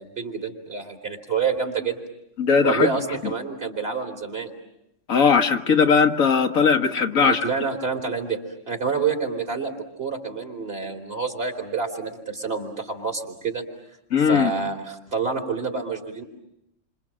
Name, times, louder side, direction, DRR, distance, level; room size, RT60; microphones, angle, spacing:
voice 1, 0.0-2.0 2.6-4.5 7.1-8.4 8.7-13.6 14.2-16.2, right 5 dB, 45° right, 3 dB, 3.5 m, -28 dB
voice 2, 2.4-2.9 5.1-7.4 14.1-14.5, left 5 dB, 85° left, 5 dB, 1.7 m, -19 dB
29.0 x 26.0 x 7.5 m, 0.80 s
omnidirectional pair, 1.4 m